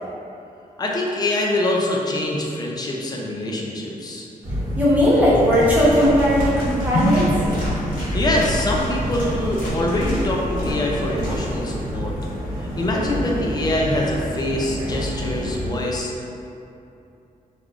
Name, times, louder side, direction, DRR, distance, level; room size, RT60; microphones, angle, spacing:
voice 1, 0.8-4.3 8.1-12.2 12.8-16.3, left 1 dB, 30° left, -2 dB, 0.3 m, -24 dB
sound 1, 4.4-15.7, equal, 80° right, 0.8 m, -28 dB
voice 2, 4.8-7.3, equal, 10° right, -9 dB, 0.7 m, -17 dB
sound 2, 5.5-11.8, equal, 75° left, 0.9 m, -28 dB
3.4 x 2.3 x 2.4 m, 2.7 s
wide cardioid pair, 160°, 15 cm